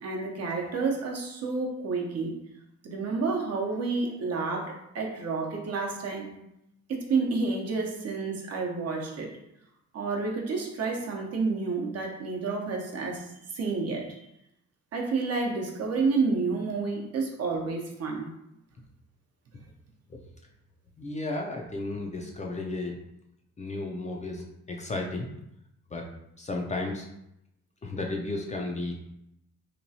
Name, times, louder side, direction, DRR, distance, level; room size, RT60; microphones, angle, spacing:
voice 1, 0.0-2.3 2.8-6.3 6.9-9.3 9.9-13.3 13.5-14.2 14.9-18.3, right 4 dB, 55° right, 0 dB, 0.7 m, -30 dB
voice 2, 21.0-23.0 23.6-25.3 25.9-26.1 26.4-27.1 27.8-29.1, left 2 dB, 25° left, 1 dB, 0.4 m, -33 dB
2.9 x 2.3 x 2.7 m, 0.81 s
cardioid pair, 90°, 30 cm